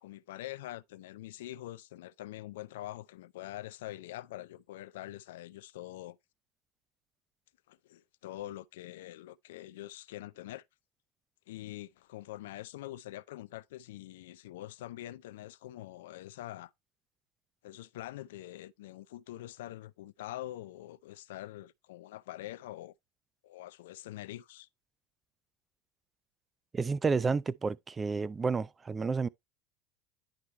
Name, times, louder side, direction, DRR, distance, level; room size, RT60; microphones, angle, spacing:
voice 1, 0.0-6.2 7.7-10.6 11.5-16.7 17.6-22.9 23.4-24.7, left 15 dB, 75° left, 0.4 m, -44 dB
voice 2, 26.7-29.3, right 4 dB, 25° right, 0.4 m, -30 dB
10.0 x 4.5 x 3.2 m
hypercardioid pair, 80°, 0 cm